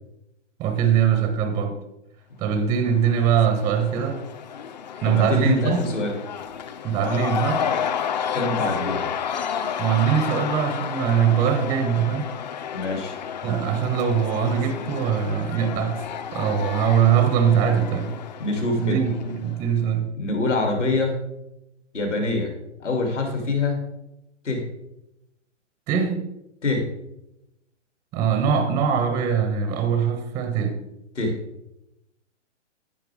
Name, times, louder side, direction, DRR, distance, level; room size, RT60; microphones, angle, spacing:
voice 1, 0.6-1.8 2.4-4.2 5.0-5.8 6.8-7.7 9.8-12.3 13.4-18.2 18.8-20.1 25.9-26.2 28.1-30.8, right 8 dB, 10° right, 0.5 m, -22 dB
Cheering / Crowd, 2.8-19.7, left 8 dB, 40° left, 0.5 m, -31 dB
voice 2, 5.0-6.2 8.3-9.1 12.7-13.2 18.4-19.0 20.2-21.2 21.9-22.5 22.8-23.8 24.4-24.7 26.6-26.9 31.1-31.4, left 2 dB, 75° left, 2.7 m, -25 dB
15.0 x 5.8 x 3.4 m
figure-of-eight pair, 125°, 37 cm